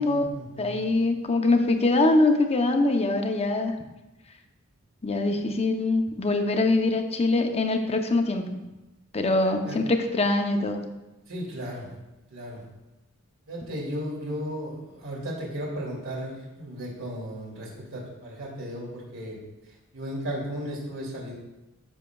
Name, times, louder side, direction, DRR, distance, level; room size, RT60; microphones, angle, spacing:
voice 1, 0.0-0.8 9.6-9.8 11.3-11.9 12.3-12.6 13.5-19.4 19.7-21.3, equal, 60° right, -4 dB, 2.6 m, -35 dB
voice 2, 0.6-3.7 5.0-8.6 9.1-10.8, left 2 dB, 30° left, 5 dB, 0.7 m, -23 dB
13.0 x 6.3 x 2.3 m, 1.0 s
head